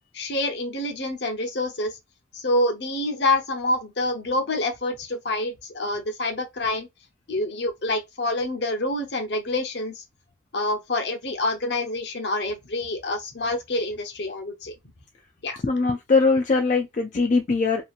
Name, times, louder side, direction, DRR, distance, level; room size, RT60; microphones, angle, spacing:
voice 1, 0.1-2.0 2.3-6.9 7.3-10.0 10.5-14.7 15.4-15.6, left 2 dB, 65° left, 0.8 m, -27 dB
voice 2, 15.6-17.8, left 4 dB, 40° left, 0.3 m, -21 dB
2.8 x 2.5 x 2.3 m
head